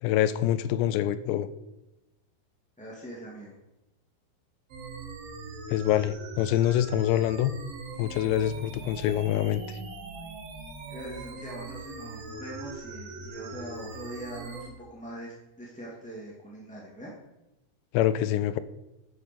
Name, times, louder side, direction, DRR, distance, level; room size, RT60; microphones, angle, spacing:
voice 1, 0.0-1.5 5.7-7.5 8.0-9.8 17.9-18.6, left 12 dB, 90° left, 14 dB, 2.9 m, -25 dB
voice 2, 2.8-3.6 10.9-17.1, right 1 dB, 5° left, -5 dB, 1.1 m, -42 dB
sound 1, 4.7-14.7, right 3 dB, 65° right, 3.2 m, -41 dB
10.0 x 7.4 x 7.0 m, 0.97 s
omnidirectional pair, 4.9 m